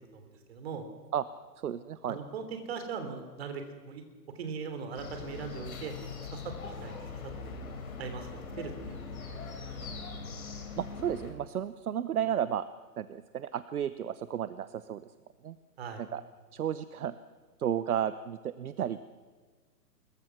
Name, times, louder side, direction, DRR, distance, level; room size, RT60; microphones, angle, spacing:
voice 1, 0.1-0.8 2.1-4.0 4.3-6.9 7.4-7.6 8.0-9.0 9.3-9.5 15.8-16.0, right 5 dB, 40° right, 7 dB, 3.4 m, -40 dB
voice 2, 1.6-2.2 10.8-12.7 13.0-15.1 15.4-15.6 16.0-16.2 16.5-17.2 17.6-19.1, right 9 dB, 60° right, 14 dB, 1.0 m, -33 dB
sound 1, 4.9-11.3, left 4 dB, 60° left, 4.8 m, -41 dB
25.5 x 22.0 x 6.1 m, 1.5 s
hypercardioid pair, 170°, 48 cm